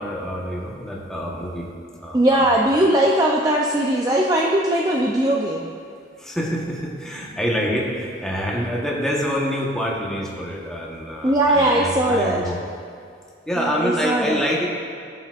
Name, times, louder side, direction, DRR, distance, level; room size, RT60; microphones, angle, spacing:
voice 1, 0.0-1.7 2.0-2.5 6.2-12.6 13.5-14.7, equal, 5° left, -3 dB, 1.0 m, -26 dB
voice 2, 2.1-5.7 11.2-12.4 13.6-14.4, right 1 dB, 20° right, -2 dB, 0.4 m, -19 dB
15.5 x 7.1 x 2.4 m, 2.3 s
head